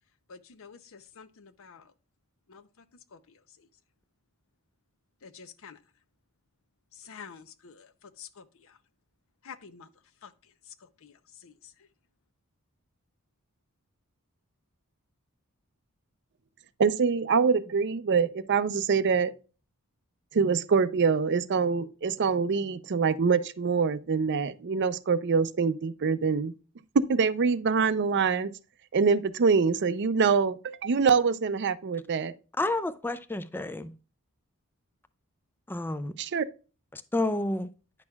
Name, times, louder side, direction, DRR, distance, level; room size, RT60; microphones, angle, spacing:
voice 1, 0.3-1.9 2.5-2.8 3.1-3.7 5.2-5.8 6.9-8.8 9.4-9.9 10.2-11.9, left 6 dB, 65° left, 0.7 m, -49 dB
voice 2, 16.8-19.3 20.3-26.5 27.1-28.5 28.9-32.3 36.2-36.4, right 5 dB, 50° right, 0.5 m, -25 dB
voice 3, 32.6-33.9 35.7-36.2 36.9-37.7, left 2 dB, 10° left, 0.3 m, -30 dB
9.7 x 6.2 x 2.3 m
head